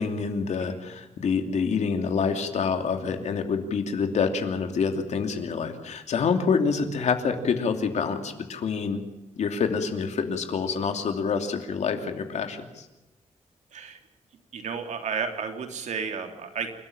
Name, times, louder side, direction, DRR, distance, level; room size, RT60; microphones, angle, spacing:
voice 1, 0.0-9.0 9.4-12.9, left 5 dB, 70° left, 6 dB, 2.8 m, -27 dB
voice 2, 14.5-16.7, right 6 dB, 80° right, 5 dB, 3.3 m, -32 dB
28.5 x 13.0 x 8.8 m, 1.0 s
wide cardioid pair, 155°, 12 cm